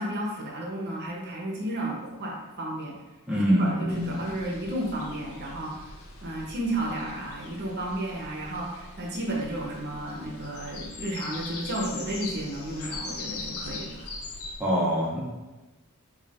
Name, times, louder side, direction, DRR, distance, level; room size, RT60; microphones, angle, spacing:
voice 1, 0.0-3.0 3.3-5.9 6.2-14.1, right 1 dB, 50° right, -2 dB, 0.7 m, -33 dB
voice 2, 3.3-4.3 14.6-15.2, equal, 5° right, -7 dB, 0.6 m, -25 dB
sound 1, 3.9-14.6, left 3 dB, 65° left, 0.6 m, -41 dB
5.2 x 2.4 x 2.4 m, 1.1 s
head